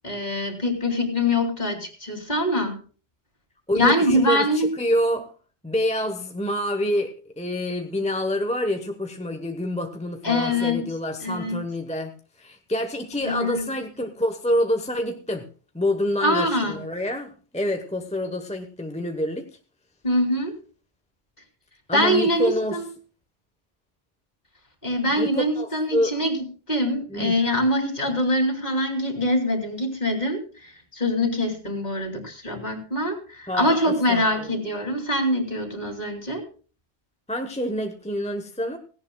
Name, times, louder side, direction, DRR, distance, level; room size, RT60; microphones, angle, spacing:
voice 1, 0.0-2.7 3.7-4.7 10.2-10.9 11.2-11.6 13.2-13.8 16.2-16.8 20.0-20.5 21.9-22.9 24.8-36.4, left 1 dB, 40° left, 4 dB, 3.0 m, -24 dB
voice 2, 3.7-5.3 5.6-12.1 12.4-15.5 15.7-19.5 21.9-22.8 25.2-26.1 27.1-27.4 33.5-34.5 37.3-38.8, equal, 5° left, 5 dB, 0.9 m, -27 dB
17.0 x 16.5 x 2.3 m, 0.38 s
omnidirectional pair, 1.1 m